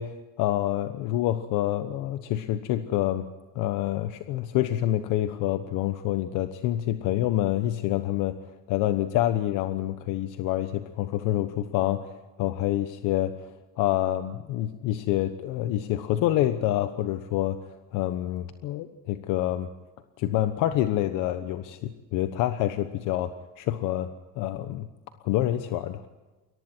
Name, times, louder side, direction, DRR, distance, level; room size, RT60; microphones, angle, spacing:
voice 1, 0.0-3.3 3.5-12.1 12.4-13.5 13.8-19.7 20.2-24.1 24.4-24.9 25.2-26.0, left 13 dB, 65° left, 9 dB, 1.1 m, -27 dB
29.0 x 22.5 x 4.5 m, 1.2 s
cardioid pair, 165°, 33 cm